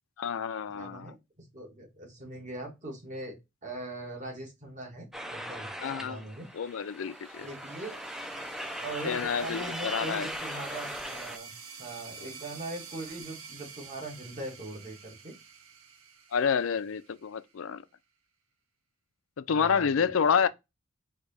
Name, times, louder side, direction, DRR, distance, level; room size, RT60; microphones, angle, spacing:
voice 1, 0.2-1.1 5.8-6.2 6.5-7.5 9.0-10.3 12.2-12.3 16.3-17.8 19.4-20.5, left 6 dB, 70° left, 0.4 m, -29 dB
voice 2, 0.7-5.7 6.0-6.5 7.4-8.0 8.8-11.5 11.8-15.3 19.5-20.2, right 2 dB, 35° right, 1.6 m, -41 dB
sound 1, 5.1-11.4, equal, ahead, 0.4 m, -39 dB
sound 2, 6.5-17.8, right 6 dB, 90° right, 0.8 m, -49 dB
4.6 x 2.9 x 4.1 m
head